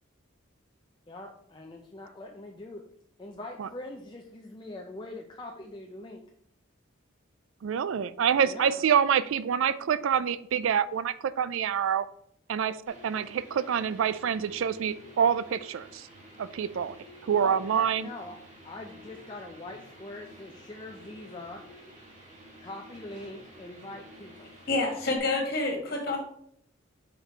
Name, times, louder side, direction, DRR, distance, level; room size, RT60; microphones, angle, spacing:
voice 1, 1.1-2.8 3.2-6.2 8.4-8.9 17.4-18.4 18.6-21.6 22.6-24.5 25.4-25.5, left 2 dB, 20° left, 0 dB, 0.5 m, -43 dB
voice 2, 7.6-12.1 12.5-16.1 16.4-16.9 17.2-18.1, right 8 dB, 70° right, 16 dB, 0.3 m, -26 dB
sound 1, 12.9-25.2, equal, 35° right, 1.7 m, -51 dB
voice 3, 24.7-26.2, left 2 dB, 50° left, 1 dB, 1.7 m, -28 dB
5.2 x 4.7 x 4.4 m, 0.66 s
head